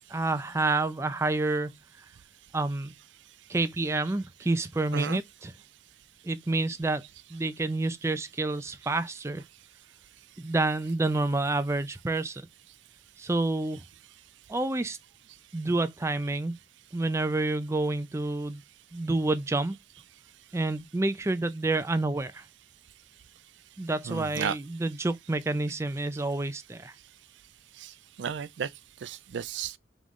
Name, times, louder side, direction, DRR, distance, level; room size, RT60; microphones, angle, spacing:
voice 1, 0.1-1.8 2.5-2.9 3.5-5.5 6.2-7.0 7.3-9.4 10.4-12.4 13.2-13.8 14.5-15.0 15.5-16.5 16.9-18.6 18.9-19.8 20.5-22.4 23.8-26.9, right 2 dB, 15° right, 0.4 m, -28 dB
voice 2, 3.7-4.1 4.9-5.2 7.1-7.4 8.6-8.8 9.1-9.2 10.8-10.9 15.3-15.4 23.9-24.6 24.9-25.0 25.4-25.5 27.7-29.8, right 7 dB, 85° right, 0.4 m, -36 dB
3.7 x 3.1 x 3.5 m
head